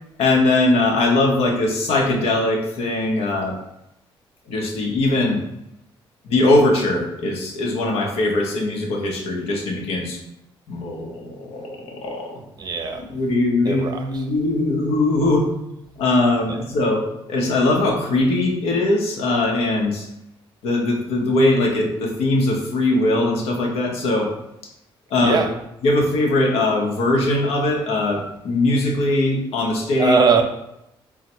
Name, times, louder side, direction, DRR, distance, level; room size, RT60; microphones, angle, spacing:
voice 1, 0.2-3.5 4.5-5.4 6.2-10.2 10.7-12.4 12.9-15.5 16.0-20.0 20.6-24.3 25.1-25.4 25.8-30.2, left 2 dB, 80° left, 0.8 m, -20 dB
voice 2, 12.6-13.0 13.7-14.0 25.2-25.5 30.0-30.4, right 5 dB, 45° right, 0.6 m, -19 dB
3.9 x 2.2 x 4.3 m
supercardioid pair, 65°, 10 cm